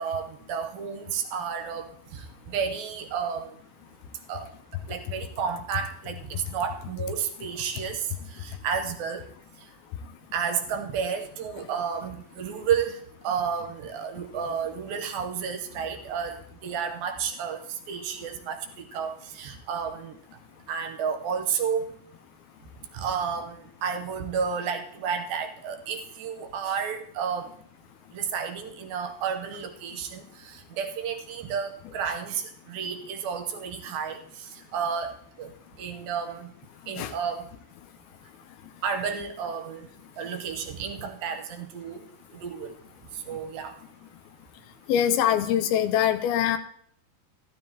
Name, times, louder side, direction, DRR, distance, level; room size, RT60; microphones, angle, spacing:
voice 1, 0.0-3.5 4.3-4.5 4.9-8.0 8.4-9.2 10.3-13.0 13.2-17.6 17.9-20.1 20.7-21.9 22.9-27.5 28.1-34.2 34.7-35.1 35.4-35.5 35.8-36.5 36.9-37.5 38.8-39.9 40.2-42.0 42.3-42.7 43.3-43.7, right 7 dB, 75° right, 5 dB, 2.6 m, -31 dB
voice 2, 44.9-46.6, left 10 dB, 90° left, 10 dB, 2.6 m, -23 dB
14.5 x 12.5 x 2.9 m, 0.64 s
omnidirectional pair, 4.5 m